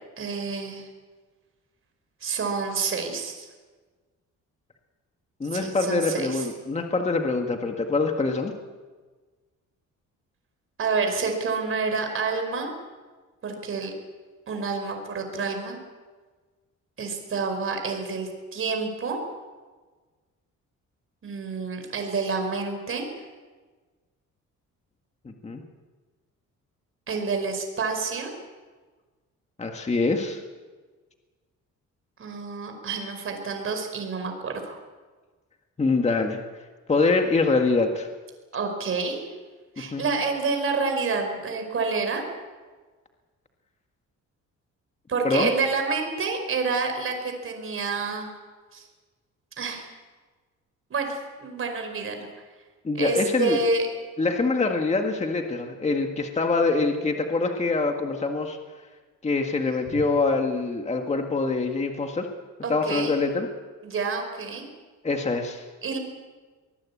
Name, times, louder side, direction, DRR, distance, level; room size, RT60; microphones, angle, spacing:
voice 1, 0.2-0.9 2.2-3.5 5.5-6.5 10.8-12.7 13.4-13.9 14.5-15.8 17.0-19.3 21.2-23.1 27.1-28.3 32.2-34.8 38.5-39.3 39.8-42.2 45.1-48.3 48.7-48.8 49.6-49.9 50.9-52.3 53.0-53.9 59.9-60.0 62.6-63.2 63.8-64.6 65.8-66.0, right 4 dB, 45° right, 4 dB, 5.0 m, -28 dB
voice 2, 5.4-8.5 25.3-25.6 29.6-30.4 35.8-36.4 36.9-38.1 39.9-40.0 45.2-45.5 52.8-53.6 54.2-58.6 59.2-62.3 62.7-63.5 65.0-65.6, left 3 dB, 20° left, 3 dB, 1.8 m, -24 dB
24.5 x 20.0 x 8.5 m, 1.4 s
cardioid pair, 150°, 31 cm